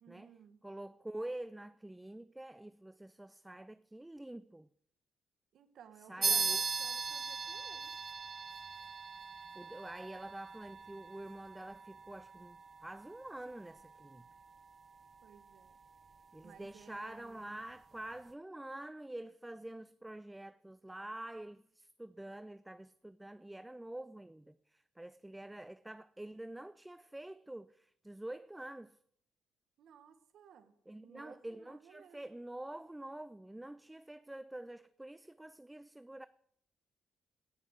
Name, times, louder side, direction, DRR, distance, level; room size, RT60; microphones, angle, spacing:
voice 1, 0.0-0.6 5.5-8.0 15.2-15.8 16.4-17.6 29.8-30.7 31.0-32.4, right 8 dB, 70° right, 1.3 m, -58 dB
voice 2, 0.6-4.7 6.1-6.6 9.5-14.3 16.3-29.0 30.9-36.3, right 1 dB, 10° right, 0.4 m, -47 dB
sound 1, 6.2-16.2, right 5 dB, 35° right, 0.8 m, -40 dB
17.5 x 5.9 x 6.5 m
cardioid pair, 90°, 0 cm